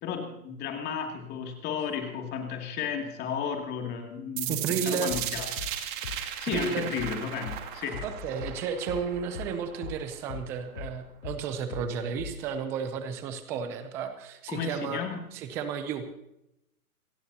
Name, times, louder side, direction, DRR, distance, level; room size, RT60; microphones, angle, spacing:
voice 1, 0.0-5.6 6.4-8.0 14.5-15.2, left 7 dB, 20° left, 3 dB, 2.5 m, -33 dB
sound 1, 4.4-10.3, right 12 dB, 35° right, 2.4 m, -36 dB
voice 2, 4.5-5.1 6.5-6.9 8.0-15.1 15.3-16.1, right 6 dB, 5° right, 9 dB, 0.4 m, -33 dB
sound 2, 5.1-10.0 10.3-12.5, left 6 dB, 50° left, 3.6 m, -40 dB
27.5 x 15.5 x 2.8 m, 0.84 s
hypercardioid pair, 135°, 44 cm